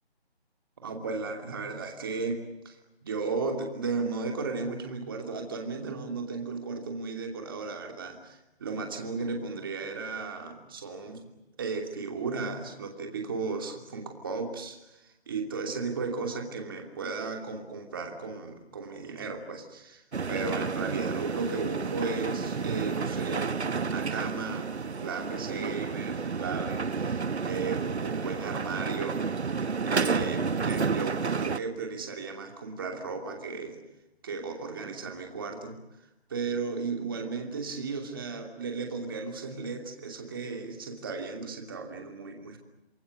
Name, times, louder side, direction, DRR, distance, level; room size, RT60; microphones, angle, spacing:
voice 1, 0.8-2.8 3.0-11.2 11.6-24.7 25.0-29.2 29.9-33.8 34.2-35.8 36.3-42.6, right 4 dB, 20° right, 3 dB, 2.8 m, -35 dB
sound 1, 20.1-31.6, right 5 dB, 90° right, 1.2 m, -31 dB
28.5 x 22.5 x 7.7 m, 0.92 s
hypercardioid pair, 175°, 32 cm